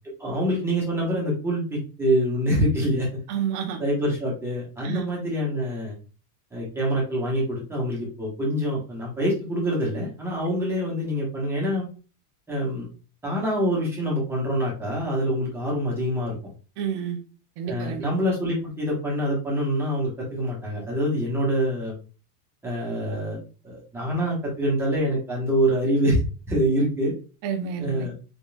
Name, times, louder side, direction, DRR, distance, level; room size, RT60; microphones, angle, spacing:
voice 1, 0.2-3.1 3.8-5.9 6.5-11.9 12.5-12.9 13.2-16.4 17.7-22.0 22.6-23.4 23.6-26.2 26.5-27.1 27.8-28.1, equal, 5° right, -5 dB, 1.0 m, -25 dB
voice 2, 3.3-3.8 4.8-5.0 16.8-17.2 17.6-18.1 27.4-28.1, right 7 dB, 25° right, 2 dB, 0.5 m, -29 dB
3.8 x 3.7 x 2.3 m, 0.35 s
supercardioid pair, 175°, 46 cm